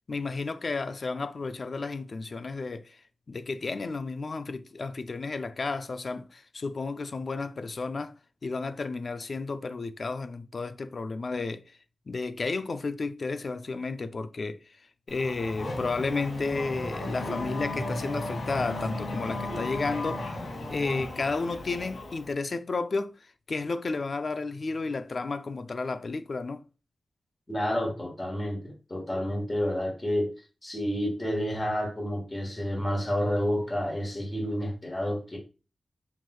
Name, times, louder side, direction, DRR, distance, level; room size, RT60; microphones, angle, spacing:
voice 1, 0.1-3.0 3.3-8.2 8.4-11.6 12.1-14.6 15.1-23.2 23.5-26.6, left 3 dB, 45° left, 0.4 m, -32 dB
Race car auto racing / Accelerating revving vroom, 15.1-22.3, left 2 dB, 70° left, 2.0 m, -35 dB
voice 2, 27.5-30.3 30.6-35.4, equal, 15° left, 1.4 m, -30 dB
5.7 x 3.1 x 2.2 m
wide cardioid pair, 170°, 0 cm